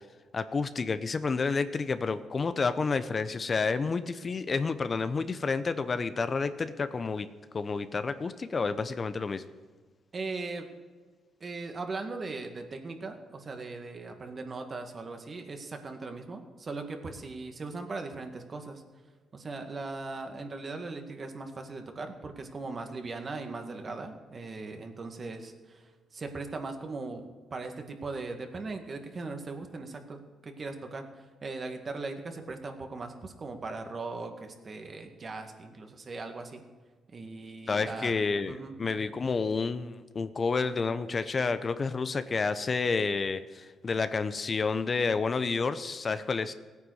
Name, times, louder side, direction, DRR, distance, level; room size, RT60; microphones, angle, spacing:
voice 1, 0.3-7.3 7.5-9.4 37.7-46.5, left 4 dB, 40° left, 11 dB, 0.8 m, -30 dB
voice 2, 10.1-10.7 11.4-18.8 19.3-27.2 27.5-36.6 37.1-38.1 38.5-38.7, right 3 dB, 45° right, 5 dB, 2.1 m, -39 dB
16.5 x 9.4 x 6.5 m, 1.4 s
supercardioid pair, 70°, 0 cm